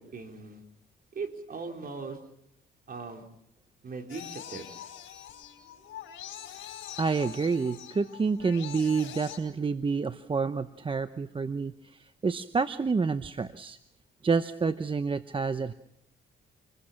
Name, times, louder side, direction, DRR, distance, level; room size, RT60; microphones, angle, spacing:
voice 1, 0.1-0.6 1.1-2.2 2.9-3.2 3.8-4.7, right 4 dB, 50° right, 3 dB, 4.6 m, -39 dB
sound 1, 4.1-9.4, left 10 dB, 80° left, 5.0 m, -44 dB
voice 2, 7.0-11.7 12.2-13.8 14.2-15.7, right 4 dB, 25° right, 12 dB, 0.8 m, -28 dB
27.0 x 22.0 x 5.9 m, 0.75 s
cardioid pair, 90°, 20 cm